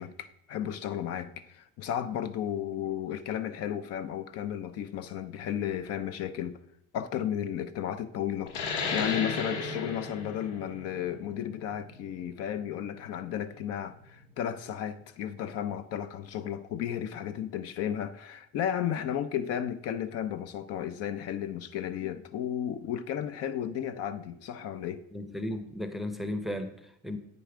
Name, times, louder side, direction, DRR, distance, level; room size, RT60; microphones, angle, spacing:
voice 1, 0.0-6.6 6.9-25.1, left 10 dB, 55° left, 0.6 m, -34 dB
sound 1, 8.5-13.6, left 4 dB, 85° left, 1.6 m, -35 dB
voice 2, 25.1-27.2, left 1 dB, ahead, 0.7 m, -35 dB
8.5 x 6.8 x 4.9 m
cardioid pair, 125°, 30 cm